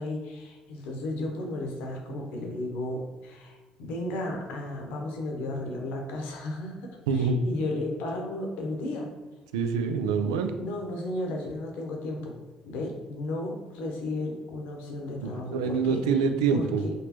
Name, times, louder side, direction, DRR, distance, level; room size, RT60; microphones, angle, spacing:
voice 1, 0.0-9.1 10.6-12.3 12.6-16.2 16.5-16.9, left 1 dB, 70° left, 1 dB, 0.8 m, -34 dB
voice 2, 7.1-7.4 9.5-10.5 15.2-16.8, right 5 dB, 85° right, 7 dB, 0.3 m, -26 dB
4.0 x 3.2 x 2.9 m, 1.2 s
hypercardioid pair, 55°, 3 cm